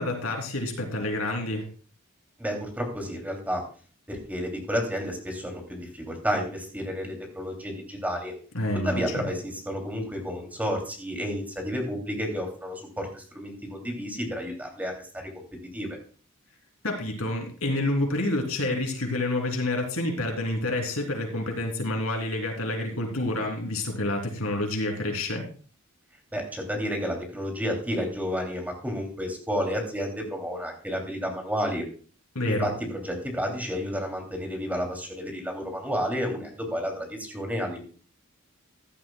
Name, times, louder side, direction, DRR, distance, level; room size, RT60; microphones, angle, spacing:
voice 1, 0.0-1.7 8.5-9.3 16.8-25.5 32.3-32.7, left 1 dB, 80° left, 2 dB, 3.1 m, -28 dB
voice 2, 2.4-3.6 4.1-8.3 8.7-15.3 15.7-15.9 26.3-31.8 32.6-37.8, equal, 10° right, 2 dB, 2.9 m, -31 dB
15.0 x 11.5 x 2.3 m, 0.41 s
head